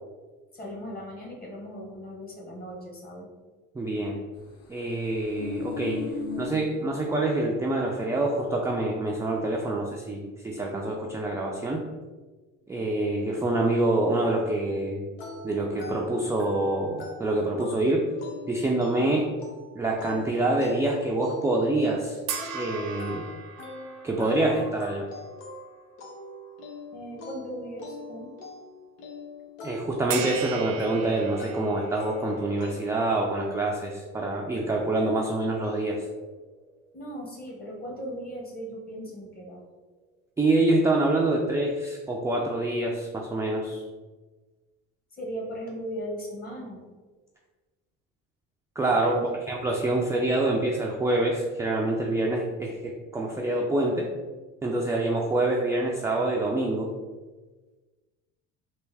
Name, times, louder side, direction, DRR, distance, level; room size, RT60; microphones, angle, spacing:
voice 1, 0.5-3.3 26.9-28.3 36.9-39.6 45.2-46.8 49.1-49.2, equal, 30° left, -1 dB, 1.1 m, -37 dB
voice 2, 3.7-4.2 4.7-6.1 6.4-11.9 12.7-15.1 15.4-18.1 18.5-19.3 19.7-22.2 22.5-23.3 24.0-25.1 29.6-36.1 40.4-43.8 48.8-49.2 49.5-54.1 54.6-56.9, right 2 dB, 10° right, -1 dB, 0.3 m, -26 dB
sound 1, 5.0-7.6 7.9-8.1, left 4 dB, 50° left, 0.5 m, -36 dB
sound 2, 15.2-32.7, left 2 dB, 90° left, 0.8 m, -44 dB
sound 3, 22.3-25.8 26.3-26.5 30.1-36.5, right 5 dB, 75° right, 0.6 m, -38 dB
3.3 x 2.5 x 3.3 m, 1.3 s
supercardioid pair, 85°, 32 cm